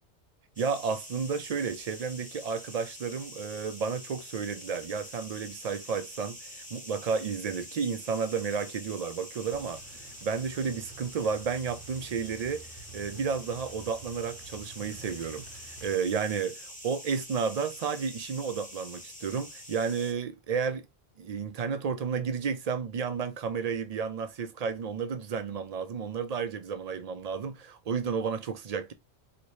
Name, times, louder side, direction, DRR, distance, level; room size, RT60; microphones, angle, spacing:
sound 1, 0.6-20.1, left 1 dB, 10° left, 0.8 m, -46 dB
voice 1, 0.6-20.8 21.2-28.9, right 6 dB, 60° right, 0.4 m, -32 dB
sound 2, 9.4-15.9, right 4 dB, 75° right, 0.9 m, -50 dB
2.8 x 2.7 x 3.0 m
omnidirectional pair, 1.1 m